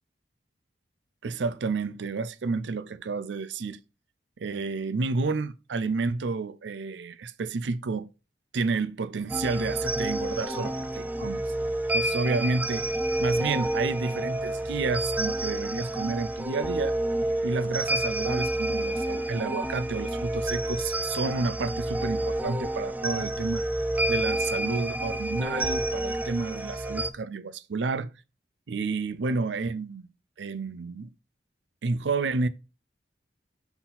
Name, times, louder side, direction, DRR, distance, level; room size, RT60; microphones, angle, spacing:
voice 1, 1.2-3.8 4.4-8.1 8.5-11.4 11.9-12.9 13.2-17.0 17.4-23.6 24.1-28.1 28.7-30.1 30.4-31.1 31.8-32.5, right 4 dB, 70° right, 0.5 m, -30 dB
sound 1, 9.3-27.1, right 1 dB, 10° right, 0.4 m, -29 dB
5.9 x 4.1 x 3.9 m
head